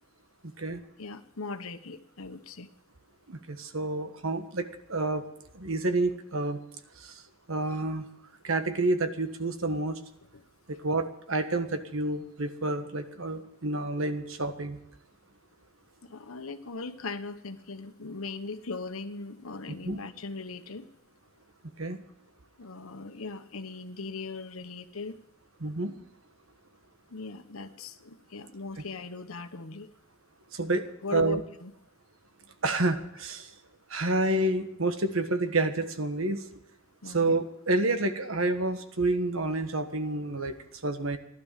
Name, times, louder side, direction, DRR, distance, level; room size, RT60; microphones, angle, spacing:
voice 1, 1.0-2.7 10.3-10.4 16.0-20.9 22.6-25.1 27.1-29.9 31.0-31.7 37.0-37.4, left 4 dB, 85° left, 9 dB, 1.1 m, -39 dB
voice 2, 3.3-5.3 5.5-6.6 7.0-7.2 7.5-8.1 8.4-10.0 10.7-14.8 19.8-20.0 21.8-22.0 25.6-25.9 30.5-31.4 32.6-33.5 33.9-36.5 37.0-41.2, right 2 dB, 75° right, 9 dB, 1.4 m, -29 dB
15.5 x 12.0 x 7.4 m, 0.79 s
head